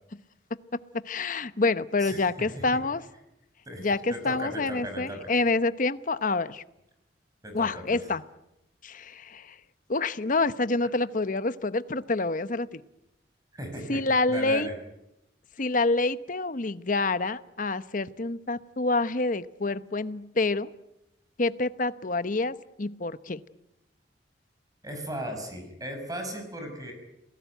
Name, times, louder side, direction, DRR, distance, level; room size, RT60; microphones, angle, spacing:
voice 1, 1.0-3.0 3.8-6.6 7.5-8.2 8.8-9.6 9.9-12.8 13.9-14.7 15.6-20.7 21.4-23.4, left 3 dB, 45° left, 14 dB, 0.9 m, -27 dB
voice 2, 2.0-2.5 3.7-5.3 7.4-8.0 13.5-14.0 14.3-14.7 24.8-26.9, equal, 20° right, 4 dB, 5.7 m, -37 dB
28.0 x 18.5 x 9.3 m, 0.89 s
head